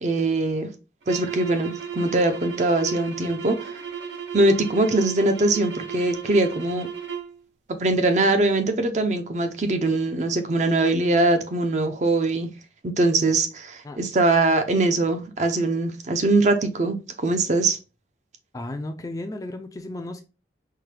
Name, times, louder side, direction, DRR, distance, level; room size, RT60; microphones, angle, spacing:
voice 1, 0.0-0.7 1.1-3.8 4.3-6.9 7.8-12.5 12.8-17.8, right 2 dB, 40° right, 0.5 m, -22 dB
sound 1, 1.0-7.4, right 7 dB, 90° right, 0.8 m, -35 dB
voice 2, 18.5-20.2, left 1 dB, 20° left, 0.3 m, -34 dB
4.5 x 2.2 x 3.2 m
head